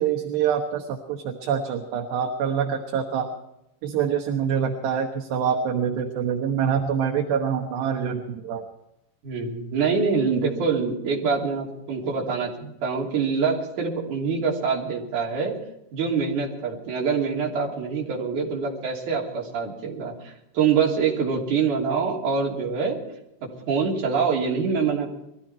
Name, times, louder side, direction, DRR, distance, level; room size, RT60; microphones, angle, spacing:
voice 1, 0.0-3.3 3.8-8.6, right 7 dB, 65° right, 2 dB, 2.7 m, -25 dB
voice 2, 9.2-15.6 15.9-23.0 23.4-25.1, right 5 dB, 45° right, -2 dB, 4.2 m, -25 dB
22.0 x 15.0 x 4.4 m, 0.86 s
omnidirectional pair, 5.2 m